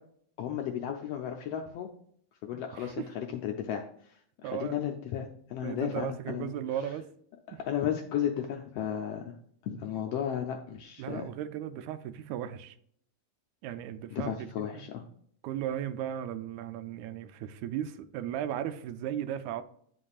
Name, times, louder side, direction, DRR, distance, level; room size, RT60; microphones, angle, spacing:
voice 1, 0.4-1.9 2.4-3.8 4.4-6.5 7.5-9.3 9.6-11.3 14.1-15.0, left 9 dB, 80° left, 1.4 m, -34 dB
voice 2, 2.5-3.1 4.4-4.8 5.6-7.1 7.5-7.6 11.0-12.8 13.6-14.5 14.7-14.9 15.4-19.6, right 10 dB, 80° right, 1.9 m, -36 dB
9.9 x 5.3 x 2.4 m
omnidirectional pair, 3.4 m